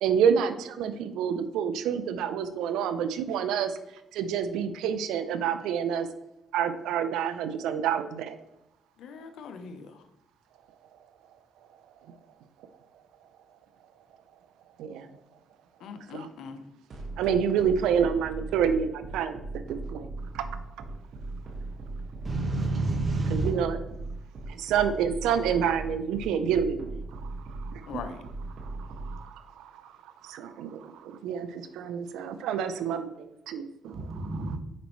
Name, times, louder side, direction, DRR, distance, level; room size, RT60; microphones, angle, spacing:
voice 1, 0.0-3.8 4.1-6.1 6.5-8.4 14.8-15.1 16.1-16.3 17.2-20.1 20.3-20.5 23.3-23.8 24.5-26.9 27.6-28.0 28.6-34.6, right 7 dB, 90° right, 11 dB, 0.5 m, -28 dB
voice 2, 9.0-10.0 15.8-16.7 27.9-28.2, left 6 dB, 80° left, 8 dB, 0.7 m, -41 dB
sound 1, 16.9-29.1, right 3 dB, 55° right, 1.6 m, -38 dB
voice 3, 22.2-23.5 33.9-34.6, right 2 dB, 35° right, 4 dB, 1.3 m, -29 dB
7.2 x 5.2 x 3.1 m, 0.87 s
cardioid pair, 90°, 0 cm